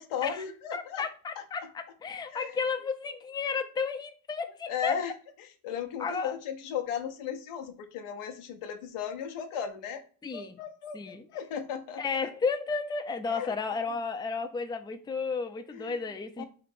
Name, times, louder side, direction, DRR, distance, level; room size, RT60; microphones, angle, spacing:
voice 1, 0.0-1.0 2.3-2.5 4.7-5.1 5.6-10.0 10.3-12.3 13.3-13.5 15.7-16.0 16.4-16.5, left 8 dB, 80° left, 0.8 m, -36 dB
voice 2, 0.7-5.0 6.0-6.4 10.2-10.6 10.9-11.3 12.0-16.4, left 5 dB, 10° left, 0.4 m, -33 dB
3.2 x 3.1 x 4.2 m
supercardioid pair, 55°, 50 cm